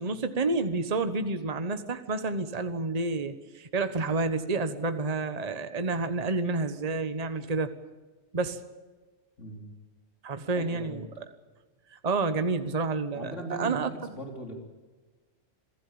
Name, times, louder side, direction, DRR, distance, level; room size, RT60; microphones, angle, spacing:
voice 1, 0.0-7.7 8.3-8.6 10.2-11.1 11.9-14.1, right 3 dB, 30° right, 9 dB, 1.3 m, -29 dB
voice 2, 9.4-9.7 10.6-11.0 13.2-13.9 14.1-14.5, right 1 dB, 65° left, 3 dB, 3.6 m, -39 dB
27.0 x 15.5 x 8.8 m, 1.3 s
omnidirectional pair, 1.3 m